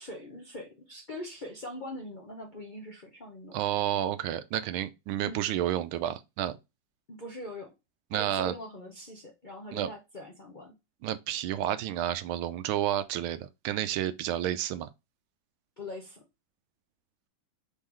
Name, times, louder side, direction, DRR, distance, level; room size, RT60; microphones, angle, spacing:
voice 1, 0.0-3.5 5.2-5.4 7.1-7.7 8.1-10.8 15.8-16.2, left 1 dB, 65° left, 0.4 m, -42 dB
voice 2, 3.5-6.6 8.1-8.5 9.7-9.9 11.0-14.9, right 12 dB, 80° right, 1.4 m, -30 dB
4.3 x 3.7 x 3.0 m
omnidirectional pair, 2.2 m